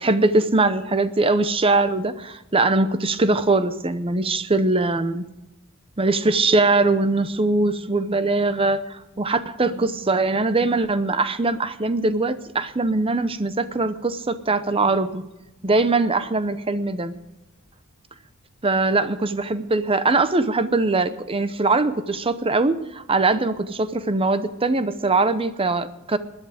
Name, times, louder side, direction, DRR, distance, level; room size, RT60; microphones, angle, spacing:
voice 1, 0.0-5.2 6.0-15.2 15.6-17.1 18.6-26.2, right 3 dB, 25° right, 12 dB, 0.7 m, -21 dB
19.5 x 11.0 x 5.0 m, 0.97 s
head